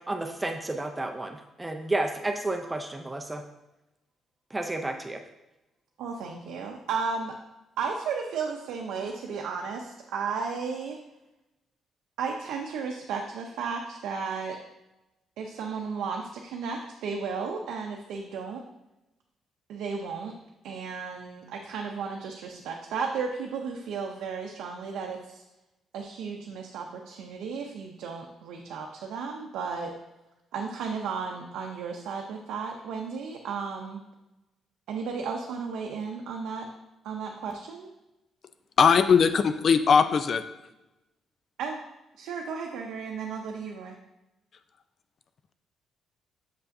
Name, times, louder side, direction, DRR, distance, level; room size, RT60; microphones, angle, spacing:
voice 1, 0.1-3.4 4.5-5.2, right 2 dB, 15° right, 4 dB, 0.5 m, -31 dB
voice 2, 6.0-7.3 7.8-11.0 12.2-14.6 15.4-18.6 19.7-20.3 20.6-25.4 25.9-29.9 30.5-34.0 34.9-36.7 37.0-37.9 41.6-41.8 42.1-44.0, right 5 dB, 85° right, 1 dB, 0.6 m, -34 dB
voice 3, 38.8-40.4, left 6 dB, 55° left, 10 dB, 0.4 m, -20 dB
6.7 x 5.6 x 2.6 m, 0.95 s
cardioid pair, 90°, 0 cm